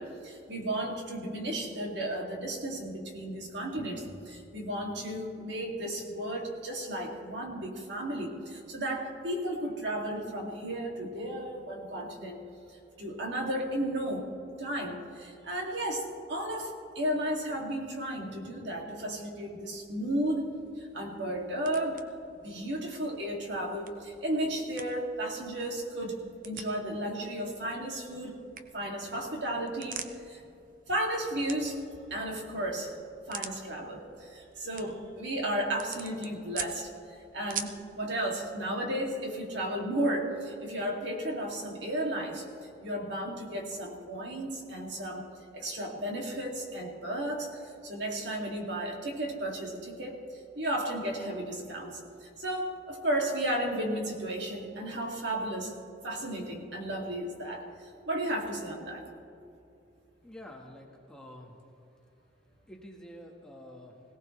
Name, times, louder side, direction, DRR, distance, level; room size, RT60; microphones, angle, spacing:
voice 1, 0.0-12.4 13.0-14.2 14.6-22.0 22.4-26.2 26.4-28.3 28.7-30.0 30.3-30.4 30.9-32.9 33.3-42.5 42.8-45.2 45.5-50.2 50.5-55.8 56.0-59.0, right 1 dB, 65° right, 0 dB, 2.4 m, -34 dB
sound 1, 19.7-37.9, right 7 dB, 45° right, 0.8 m, -47 dB
voice 2, 60.2-61.6 62.7-64.0, left 1 dB, 5° left, 0 dB, 1.4 m, -48 dB
21.5 x 17.0 x 3.2 m, 2.6 s
head